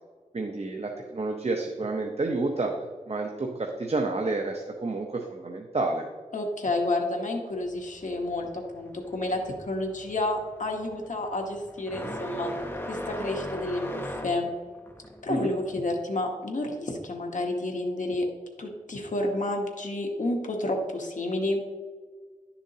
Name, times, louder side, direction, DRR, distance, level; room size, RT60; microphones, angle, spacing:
voice 1, 0.3-2.7 3.1-6.1 15.3-15.5, right 3 dB, 50° right, 2 dB, 0.8 m, -29 dB
voice 2, 6.3-12.5 12.9-14.5 15.2-18.3 18.6-21.6, left 2 dB, 70° left, 1 dB, 1.2 m, -30 dB
sound 1, 7.6-15.7, equal, 15° left, 1.0 m, -38 dB
11.0 x 7.1 x 2.8 m, 1.5 s
wide cardioid pair, 80°, 14 cm